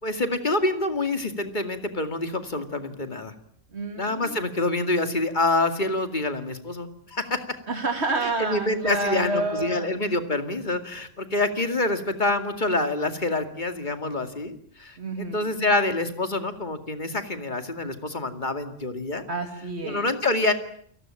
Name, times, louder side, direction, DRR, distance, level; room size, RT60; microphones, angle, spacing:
voice 1, 0.0-3.3 4.0-7.6 8.2-19.2 19.8-20.5, left 2 dB, 40° left, 8 dB, 2.5 m, -26 dB
voice 2, 3.7-4.4 7.7-9.9 15.0-15.5 19.3-20.1, right 2 dB, 60° right, 4 dB, 3.1 m, -29 dB
29.5 x 18.5 x 8.9 m, 0.64 s
omnidirectional pair, 1.3 m